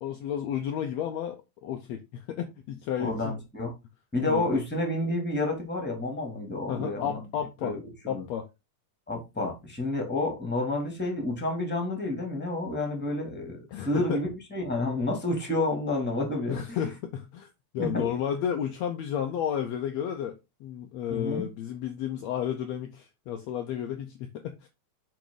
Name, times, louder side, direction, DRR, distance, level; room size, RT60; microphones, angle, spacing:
voice 1, 0.0-3.4 4.2-4.4 6.7-7.8 8.1-8.5 13.7-14.2 16.5-17.5 17.7-24.7, left 9 dB, 75° left, 1.7 m, -32 dB
voice 2, 3.0-3.7 4.1-7.2 7.6-7.8 8.1-8.2 9.1-16.8 17.8-18.1 21.1-21.4, left 2 dB, 5° left, 2.0 m, -30 dB
7.1 x 5.2 x 3.9 m
omnidirectional pair, 3.6 m